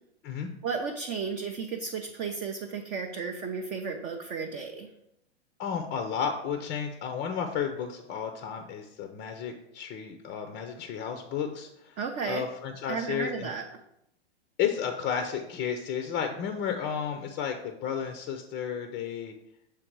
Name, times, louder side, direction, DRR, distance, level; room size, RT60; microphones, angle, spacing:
voice 1, 0.6-4.9 12.0-12.4 12.9-13.6, right 5 dB, 25° right, 2 dB, 0.4 m, -33 dB
voice 2, 5.6-12.0 12.3-13.5 14.6-19.3, left 7 dB, 30° left, 6 dB, 0.5 m, -32 dB
6.6 x 3.5 x 4.5 m, 0.81 s
hypercardioid pair, 120°, 34 cm